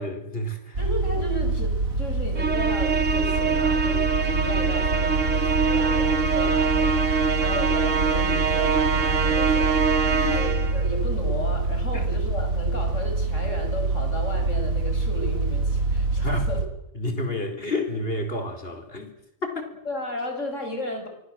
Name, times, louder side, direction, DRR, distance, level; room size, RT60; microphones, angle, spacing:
voice 1, 0.0-0.8 10.1-10.4 11.9-12.0 16.2-16.5 16.9-19.1 19.4-19.7, left 1 dB, 40° left, 4.8 m, -30 dB
sound 1, 0.7-16.7, right 3 dB, 75° right, 3.2 m, -26 dB
voice 2, 0.8-10.0 10.2-16.6 19.8-21.1, left 1 dB, 60° left, 6.5 m, -34 dB
Musical instrument, 2.4-10.8, right 5 dB, 60° right, 2.2 m, -24 dB
28.0 x 24.0 x 7.7 m
omnidirectional pair, 1.5 m